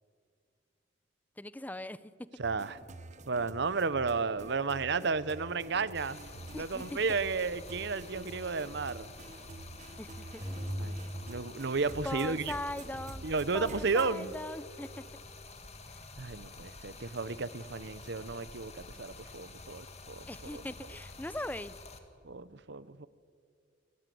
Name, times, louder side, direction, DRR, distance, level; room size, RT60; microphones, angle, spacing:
voice 1, 1.4-2.1 6.5-7.0 10.0-10.4 12.0-13.3 13.5-15.0 15.9-16.0 20.3-21.8, left 1 dB, 10° left, 16 dB, 0.6 m, -40 dB
sound 1, 2.4-14.2, right 2 dB, 40° right, 1.0 m, -48 dB
voice 2, 2.4-2.8 3.3-6.2 6.5-9.1 10.8-11.0 11.3-12.5 13.2-14.3 16.2-20.3 20.5-20.6 22.2-23.1, right 4 dB, 65° right, 16 dB, 0.9 m, -33 dB
Stream, 5.9-22.0, left 3 dB, 35° left, 2.0 m, -49 dB
sound 2, 10.4-12.6, equal, 15° right, 5.4 m, -40 dB
28.5 x 15.5 x 9.4 m, 2.3 s
head